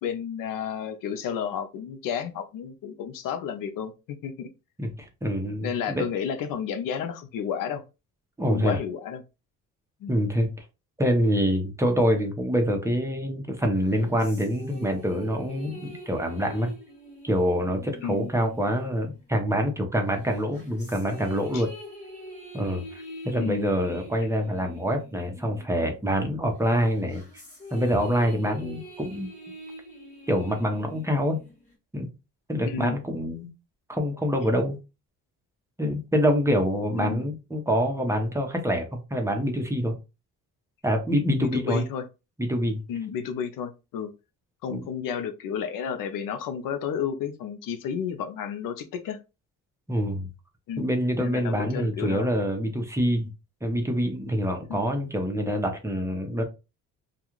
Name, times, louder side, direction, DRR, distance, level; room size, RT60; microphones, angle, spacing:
voice 1, 0.0-4.5 5.6-7.8 8.5-9.2 10.0-10.1 18.0-18.3 21.5-21.6 23.4-23.7 32.6-33.0 36.9-37.3 41.3-42.0 42.9-44.1 44.6-49.2 50.7-50.9 51.2-52.3 54.7-54.8, left 8 dB, 75° left, 0.6 m, -32 dB
voice 2, 4.8-6.0 8.4-8.8 10.1-10.5 11.0-16.7 17.2-21.7 22.5-27.2 27.7-29.3 30.3-31.4 31.9-32.1 32.5-33.5 33.9-34.8 35.8-39.9 40.8-41.8 42.4-42.8 44.7-44.8 49.9-50.3 50.8-53.3 53.6-56.4, equal, 10° right, 0.7 m, -26 dB
sound 1, 13.7-19.7 20.2-26.2 26.6-31.7, left 1 dB, 20° left, 1.5 m, -44 dB
2.4 x 2.3 x 3.0 m
cardioid pair, 100°, 33 cm